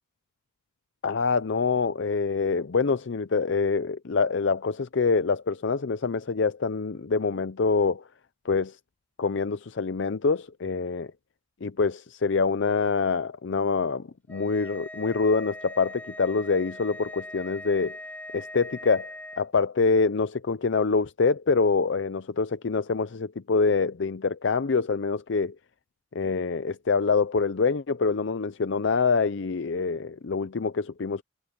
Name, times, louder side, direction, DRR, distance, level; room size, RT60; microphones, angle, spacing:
voice 1, 1.0-8.0 8.5-8.8 9.2-11.1 11.6-18.0 18.3-19.1 19.4-25.5 26.1-31.2, left 4 dB, 55° left, 0.5 m, -25 dB
sound 1, 14.3-19.4, left 1 dB, 10° left, 7.4 m, -41 dB
head